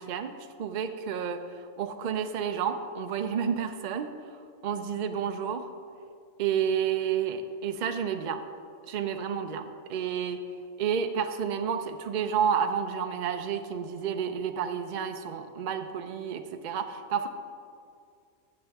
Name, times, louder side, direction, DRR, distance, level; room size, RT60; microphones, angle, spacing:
voice 1, 0.0-1.4 1.8-4.1 4.6-5.7 6.4-8.4 8.9-10.4 10.8-17.3, right 7 dB, 65° right, 7 dB, 0.4 m, -30 dB
14.0 x 7.0 x 3.5 m, 2.3 s
omnidirectional pair, 1.3 m